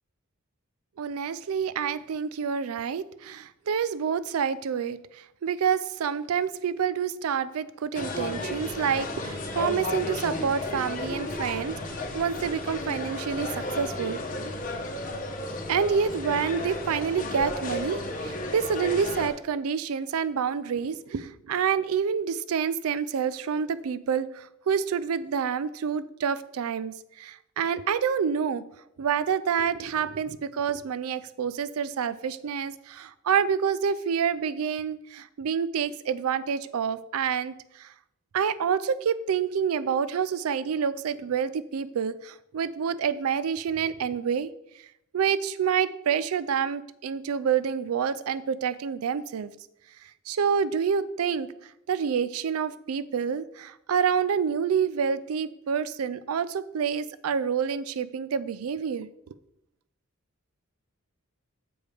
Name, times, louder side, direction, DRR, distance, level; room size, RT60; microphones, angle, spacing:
voice 1, 1.0-5.0 5.4-14.2 15.7-28.6 29.0-37.5 37.8-37.9 38.3-44.5 45.1-49.5 50.3-51.5 51.9-59.1, right 7 dB, 85° right, 16 dB, 0.4 m, -28 dB
sound 1, 7.9-19.3, left 2 dB, 40° left, 1.0 m, -33 dB
7.0 x 5.0 x 4.9 m, 0.81 s
head